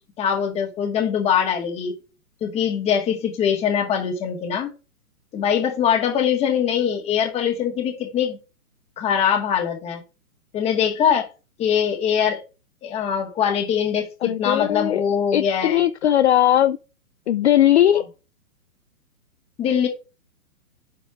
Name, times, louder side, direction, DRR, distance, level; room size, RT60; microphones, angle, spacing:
voice 1, 0.2-1.9 2.4-4.7 5.3-8.4 9.0-10.0 10.5-11.3 11.6-12.4 12.8-15.8 19.6-19.9, left 8 dB, 15° left, 1.3 m, -22 dB
voice 2, 14.2-15.0 15.3-16.8 17.3-18.0, left 12 dB, 50° left, 0.5 m, -18 dB
9.1 x 7.6 x 2.3 m
hypercardioid pair, 150°, 44 cm